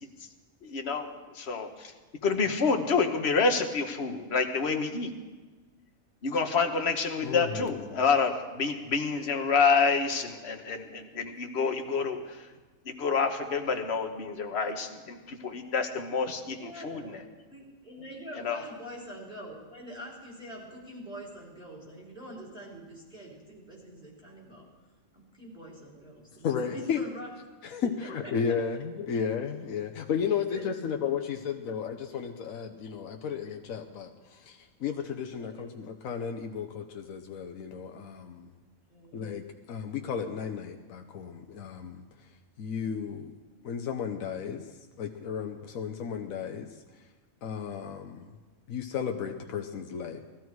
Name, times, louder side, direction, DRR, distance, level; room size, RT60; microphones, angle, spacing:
voice 1, 0.6-1.9 2.2-5.1 6.2-12.5 12.8-17.2 18.3-18.6, left 5 dB, 55° left, 5 dB, 1.4 m, -28 dB
voice 2, 7.2-7.9 26.4-27.0 27.6-38.5 39.1-42.0 42.6-43.3 43.6-44.7 45.0-46.8 47.4-48.3 48.7-50.2, left 7 dB, 80° left, 4 dB, 1.3 m, -34 dB
voice 3, 16.5-17.1 17.5-24.7 25.1-27.3 27.8-28.6 30.5-30.7 35.4-35.7 38.9-39.4, equal, 5° right, -3 dB, 4.1 m, -45 dB
18.5 x 13.0 x 4.7 m, 1.3 s
omnidirectional pair, 1.4 m